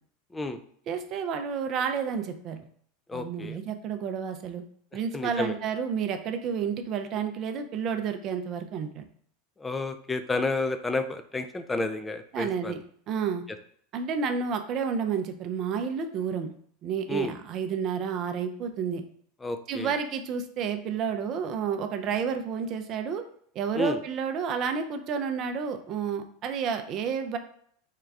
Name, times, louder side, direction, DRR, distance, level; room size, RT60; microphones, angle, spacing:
voice 1, 0.9-2.6 3.1-4.6 4.9-9.0 12.3-13.4 13.9-16.5 16.8-19.0 19.7-23.2 23.5-27.4, right 6 dB, 45° right, 7 dB, 0.5 m, -30 dB
voice 2, 3.1-3.6 5.1-5.6 9.6-12.8 17.1-17.4 19.4-19.9 23.7-24.0, left 2 dB, 15° left, 8 dB, 0.4 m, -31 dB
3.7 x 2.3 x 3.3 m, 0.63 s
hypercardioid pair, 100°, 0 cm